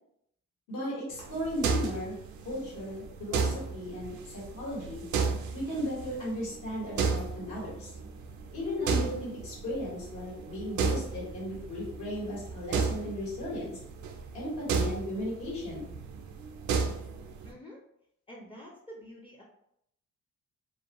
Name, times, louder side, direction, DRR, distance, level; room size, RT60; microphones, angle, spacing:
voice 1, 0.7-2.2 2.4-5.0 5.5-7.9 8.5-13.8 14.3-15.9, left 1 dB, 80° left, -5 dB, 1.4 m, -36 dB
sound 1, 1.1-17.5, right 5 dB, 70° right, 0.5 m, -34 dB
voice 2, 17.4-17.8 18.3-19.4, equal, 15° left, -2 dB, 0.5 m, -48 dB
2.5 x 2.1 x 2.9 m, 0.76 s
cardioid pair, 90°, 30 cm